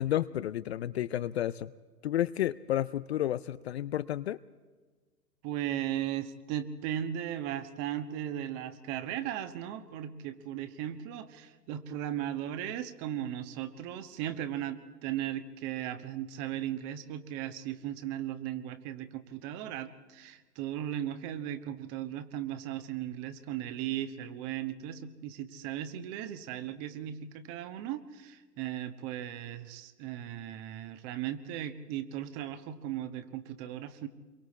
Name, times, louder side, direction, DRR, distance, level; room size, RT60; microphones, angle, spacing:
voice 1, 0.0-1.7 2.0-4.4, left 12 dB, 45° left, 16 dB, 0.5 m, -31 dB
voice 2, 5.4-34.1, right 11 dB, 30° right, 11 dB, 1.3 m, -37 dB
27.5 x 23.0 x 4.3 m, 1.3 s
figure-of-eight pair, 115°, 47 cm